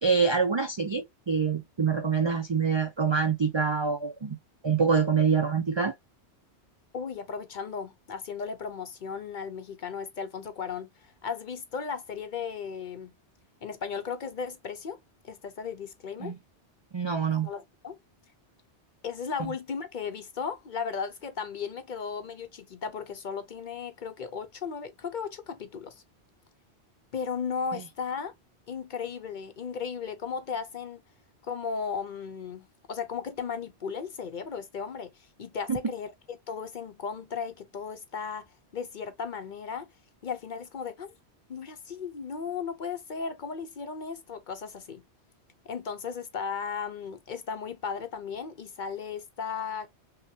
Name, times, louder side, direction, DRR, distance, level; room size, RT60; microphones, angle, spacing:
voice 1, 0.0-4.4 4.6-5.9 16.2-16.3 16.9-17.5 27.7-27.8 35.7-35.8, right 5 dB, 50° right, 0.3 m, -25 dB
voice 2, 6.9-13.1 13.6-15.0 15.2-16.3 17.4-18.0 19.0-26.0 27.1-28.3 28.7-31.0 31.4-38.5 38.7-39.9 40.2-41.1 41.5-45.0 45.7-49.9, left 6 dB, 55° left, 0.6 m, -36 dB
5.6 x 2.2 x 2.7 m
omnidirectional pair, 1.1 m